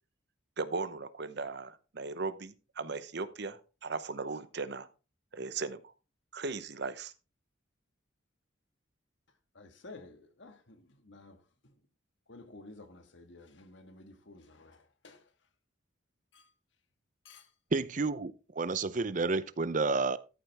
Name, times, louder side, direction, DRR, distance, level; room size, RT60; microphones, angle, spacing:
voice 1, 0.6-4.9 5.3-5.9 6.3-7.1, right 4 dB, 55° right, 0.9 m, -37 dB
voice 2, 9.5-11.8 12.3-15.3 16.3-16.5 17.2-17.5, left 2 dB, 65° left, 1.6 m, -53 dB
voice 3, 17.7-20.2, right 3 dB, 40° right, 0.6 m, -30 dB
13.5 x 7.7 x 3.4 m
head